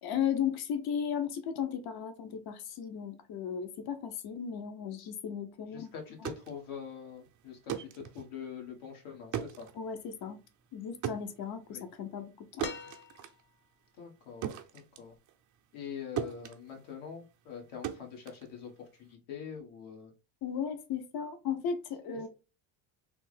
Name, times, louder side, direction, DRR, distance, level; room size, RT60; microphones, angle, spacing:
voice 1, 0.0-5.9 9.7-10.4 10.7-12.7 20.4-22.3, left 8 dB, 50° left, 8 dB, 0.7 m, -35 dB
voice 2, 5.7-9.7 11.7-11.8 14.0-15.1 15.7-20.1, left 7 dB, 75° left, 1 dB, 1.3 m, -44 dB
sound 1, 6.0-15.9 16.2-19.1, right 10 dB, 40° right, 0.5 m, -41 dB
sound 2, 12.6-13.6 15.1-15.2, left 6 dB, 25° left, 0.4 m, -43 dB
3.3 x 2.0 x 3.1 m, 0.31 s
supercardioid pair, 95°, 49 cm